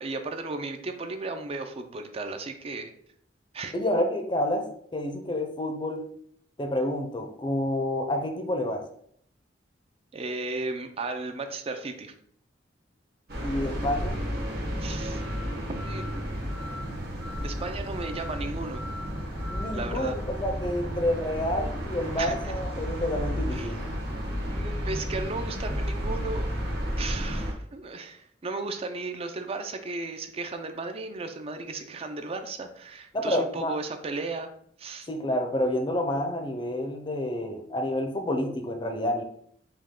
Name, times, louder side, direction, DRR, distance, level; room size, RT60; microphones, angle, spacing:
voice 1, 0.0-2.9 3.5-3.7 10.1-12.1 14.8-15.3 15.8-16.5 17.4-18.8 19.7-20.2 22.2-22.5 23.5-23.7 24.5-26.5 26.9-34.5 34.8-35.1, right 3 dB, 35° right, 7 dB, 0.4 m, -35 dB
voice 2, 3.7-4.6 4.9-6.0 6.6-8.8 13.4-14.2 19.5-23.8 33.1-33.7 35.1-39.2, left 1 dB, 25° left, 5 dB, 0.6 m, -29 dB
sound 1, 13.3-27.5, equal, 60° right, 1.2 m, -32 dB
5.2 x 2.3 x 3.6 m, 0.65 s
head